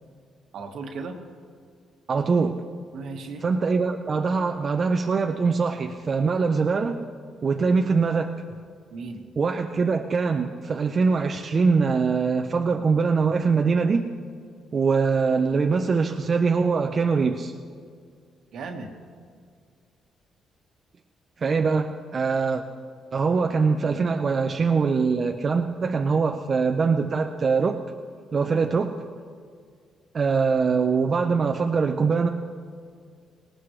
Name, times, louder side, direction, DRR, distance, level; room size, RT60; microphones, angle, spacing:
voice 1, 0.5-1.2 2.9-3.5 8.9-9.2 18.5-18.9, right 4 dB, 70° right, 3 dB, 1.5 m, -36 dB
voice 2, 2.1-2.6 3.4-7.0 7.4-8.4 9.4-14.1 14.7-17.5 21.4-22.6 23.1-27.8 28.3-29.0 30.1-32.3, right 5 dB, 40° right, 3 dB, 0.7 m, -23 dB
19.0 x 19.0 x 3.2 m, 2.1 s
cardioid pair, 90°, 0 cm